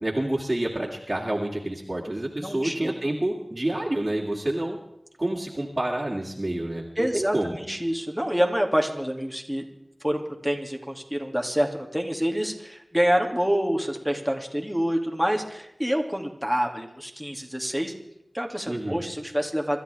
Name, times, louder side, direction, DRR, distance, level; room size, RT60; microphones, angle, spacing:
voice 1, 0.0-4.8 5.2-7.6 18.7-19.0, right 1 dB, 35° right, -4 dB, 2.4 m, -28 dB
voice 2, 2.4-2.9 7.0-9.6 10.0-17.9 18.3-19.8, equal, ahead, 1 dB, 2.3 m, -27 dB
27.0 x 13.0 x 3.4 m, 0.82 s
wide cardioid pair, 45°, 0 cm